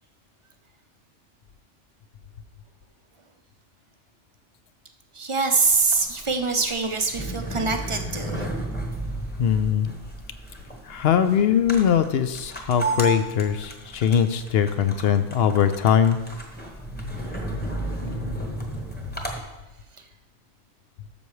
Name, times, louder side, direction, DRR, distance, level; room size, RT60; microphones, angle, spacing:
voice 1, 5.1-8.5, right 4 dB, 35° right, 5 dB, 0.6 m, -24 dB
sound 1, 5.6-19.4, right 1 dB, 10° left, 1.0 m, -33 dB
voice 2, 9.4-9.9 10.9-16.2, left 8 dB, 65° left, 10 dB, 0.7 m, -21 dB
12.0 x 6.9 x 3.2 m, 1.0 s
omnidirectional pair, 1.2 m